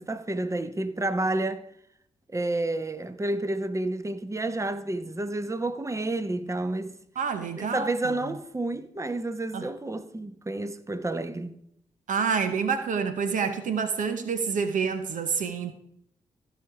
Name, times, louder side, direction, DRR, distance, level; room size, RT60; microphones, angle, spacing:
voice 1, 0.0-1.6 2.3-6.9 7.6-11.6, right 2 dB, 20° right, 1.0 m, -30 dB
voice 2, 7.2-8.2 9.5-9.7 12.1-15.7, right 6 dB, 70° right, 0.9 m, -28 dB
15.0 x 5.2 x 4.8 m
supercardioid pair, 40°, 14 cm